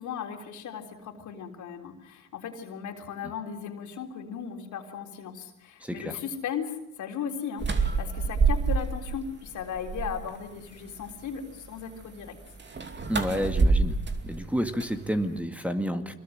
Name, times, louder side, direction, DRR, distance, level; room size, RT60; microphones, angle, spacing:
voice 1, 0.0-12.4, left 7 dB, 75° left, 4 dB, 3.7 m, -37 dB
voice 2, 5.8-6.2 13.1-14.0 14.2-16.1, equal, 5° right, 7 dB, 2.0 m, -30 dB
sound 1, 7.6-9.2 9.5-10.4 12.6-15.4, right 4 dB, 35° right, 2.7 m, -27 dB
25.0 x 21.5 x 7.8 m, 0.81 s
cardioid pair, 90°, 30 cm